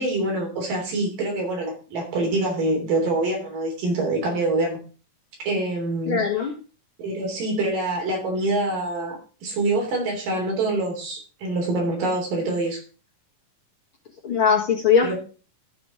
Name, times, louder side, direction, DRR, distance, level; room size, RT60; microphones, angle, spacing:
voice 1, 0.0-4.8 5.4-6.2 7.0-12.8 15.0-15.2, right 2 dB, 75° right, 0 dB, 4.9 m, -25 dB
voice 2, 6.1-6.5 14.2-15.1, left 6 dB, 50° left, -1 dB, 1.9 m, -20 dB
13.5 x 4.9 x 4.9 m, 0.37 s
omnidirectional pair, 3.8 m